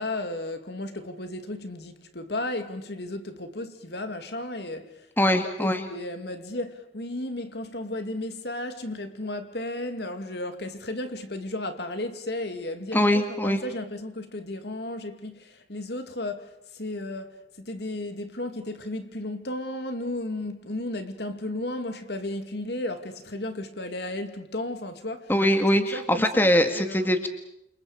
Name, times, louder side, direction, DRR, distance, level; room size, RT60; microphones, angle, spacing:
voice 1, 0.0-13.1 13.4-25.3 25.8-27.2, left 1 dB, 65° left, 2.5 m, -34 dB
voice 2, 5.2-5.8 12.9-13.6 25.3-27.3, left 1 dB, 10° left, 1.9 m, -22 dB
29.0 x 28.0 x 5.1 m
head